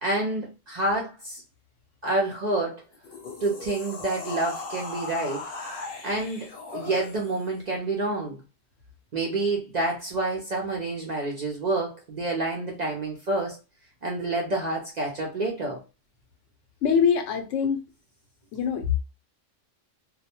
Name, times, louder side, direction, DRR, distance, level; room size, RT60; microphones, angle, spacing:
voice 1, 0.0-1.4 2.0-2.8 3.4-5.4 6.0-8.4 9.1-13.6 14.0-15.8, right 2 dB, 55° right, 0.5 m, -28 dB
sound 1, 2.9-7.5, left 3 dB, 55° left, 0.8 m, -38 dB
voice 2, 16.8-17.8 18.5-19.0, left 7 dB, 85° left, 0.9 m, -23 dB
2.3 x 2.1 x 2.8 m
omnidirectional pair, 1.3 m